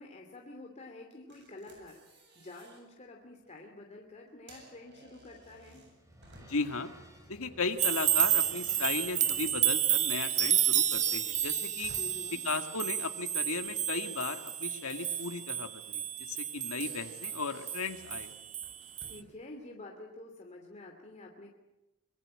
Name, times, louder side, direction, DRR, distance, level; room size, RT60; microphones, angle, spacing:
voice 1, 0.0-5.8 11.9-12.4 19.1-21.5, left 2 dB, 30° left, 1 dB, 2.7 m, -49 dB
sound 1, 1.3-2.8 3.3-3.5 4.3-6.8 7.5-10.1 10.3-12.1 13.6-15.4 15.8-16.0 16.5-16.6 16.8-19.3, right 2 dB, 55° right, 7.7 m, -57 dB
sound 2, 5.0-10.1, equal, 15° right, 5.3 m, -57 dB
voice 2, 6.5-6.9 7.3-11.9 12.4-16.0 16.3-18.3, left 4 dB, 75° left, 6 dB, 1.9 m, -36 dB
sound 3, 7.8-18.7 19.0-19.2, right 10 dB, 35° right, 1.0 m, -30 dB
25.0 x 21.5 x 8.8 m, 0.99 s
head